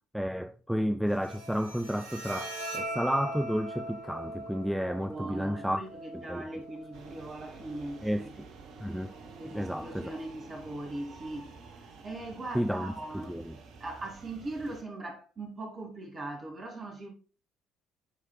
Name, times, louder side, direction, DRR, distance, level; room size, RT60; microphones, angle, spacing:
voice 1, 0.1-5.8 6.1-6.4 8.0-8.3 8.8-9.1 9.5-10.1 12.5-12.9 13.3-13.6, equal, ahead, 0.3 m, -31 dB
Bowed string instrument, 1.1-8.1, right 1 dB, 80° right, 1.2 m, -42 dB
voice 2, 5.0-8.3 9.4-13.5 13.8-17.1, right 2 dB, 35° right, 2.2 m, -40 dB
sound 1, 6.9-14.8, right 4 dB, 55° right, 1.0 m, -50 dB
9.4 x 4.7 x 2.2 m
figure-of-eight pair, 50°, 0 cm